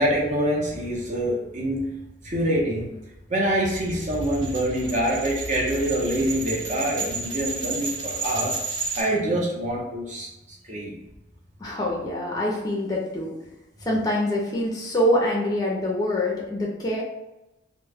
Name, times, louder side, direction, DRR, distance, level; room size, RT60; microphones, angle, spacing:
voice 1, 0.0-1.9 2.2-2.9 3.3-8.6 9.0-11.0, right 1 dB, 40° right, -3 dB, 0.6 m, -25 dB
sound 1, 3.7-9.0, right 4 dB, 75° right, 0.7 m, -32 dB
voice 2, 11.6-13.4 13.8-17.0, left 1 dB, 20° left, -3 dB, 0.4 m, -25 dB
2.2 x 2.1 x 3.3 m, 0.93 s
head